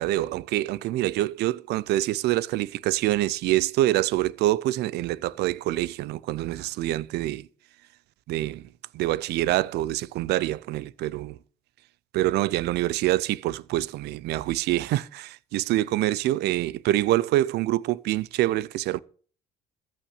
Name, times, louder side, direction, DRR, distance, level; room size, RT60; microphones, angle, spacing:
voice 1, 0.0-7.5 8.3-8.7 8.9-11.4 12.1-19.0, right 15 dB, 80° right, 0.6 m, -26 dB
14.5 x 6.2 x 8.2 m
cardioid pair, 110°, 17 cm